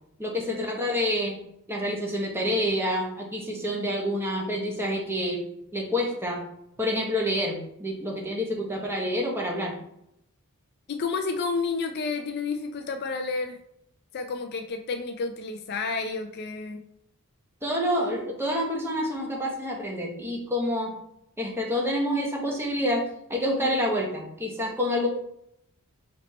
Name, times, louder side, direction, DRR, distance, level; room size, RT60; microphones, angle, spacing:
voice 1, 0.2-1.4 1.7-5.4 5.7-6.4 6.8-9.8 17.6-20.9 21.4-25.1, equal, 10° right, -1 dB, 1.0 m, -28 dB
voice 2, 10.9-13.6 14.1-16.8 23.6-23.9, left 4 dB, 45° left, 6 dB, 0.4 m, -31 dB
4.1 x 3.1 x 4.1 m, 0.76 s
head